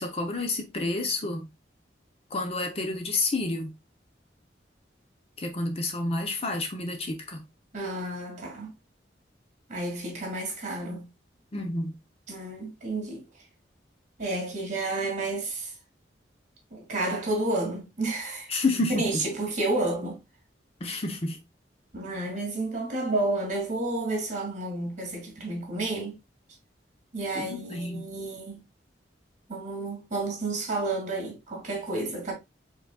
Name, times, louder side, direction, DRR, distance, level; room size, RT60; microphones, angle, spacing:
voice 1, 0.0-1.5 2.3-3.7 5.4-7.4 11.5-12.0 18.5-19.1 20.8-21.4 27.3-28.1, left 2 dB, 35° left, 0.7 m, -29 dB
voice 2, 7.7-8.7 9.7-11.1 12.3-13.2 14.2-15.7 16.7-18.5 18.9-20.2 21.9-26.1 27.1-28.7 29.5-32.3, right 2 dB, 40° right, 2.1 m, -31 dB
4.9 x 3.9 x 2.3 m
head